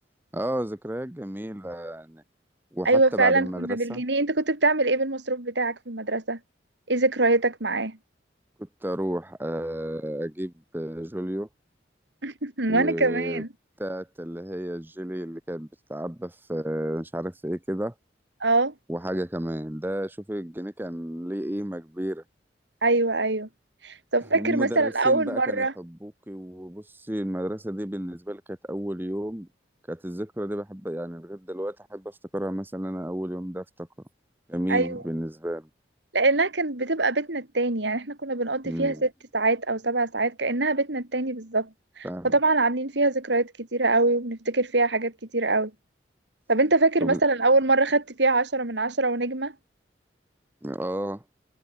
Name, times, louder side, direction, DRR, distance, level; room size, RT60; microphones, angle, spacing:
voice 1, 0.3-2.2 2.7-4.0 8.6-11.5 12.7-13.4 13.8-17.9 18.9-22.2 24.3-29.5 29.9-33.9 34.5-35.7 38.6-39.0 42.0-42.3 47.0-47.2 50.6-51.2, equal, 10° right, 1.1 m, -32 dB
voice 2, 2.8-6.4 6.9-8.0 12.2-13.5 18.4-18.7 22.8-23.5 23.8-25.7 34.7-35.0 36.1-41.7 42.0-45.7 46.5-49.5, right 2 dB, 70° right, 2.9 m, -24 dB
head